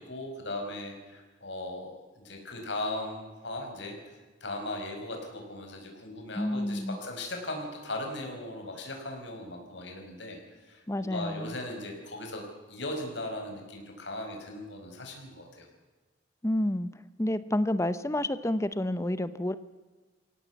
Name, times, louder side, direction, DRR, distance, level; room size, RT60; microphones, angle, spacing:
voice 1, 0.0-12.4 12.7-15.7, left 1 dB, 65° left, 2 dB, 5.1 m, -38 dB
voice 2, 6.4-7.0 10.9-11.6 16.4-16.9 17.2-19.5, left 1 dB, 15° left, 14 dB, 0.6 m, -29 dB
23.0 x 17.0 x 8.1 m, 1.3 s
head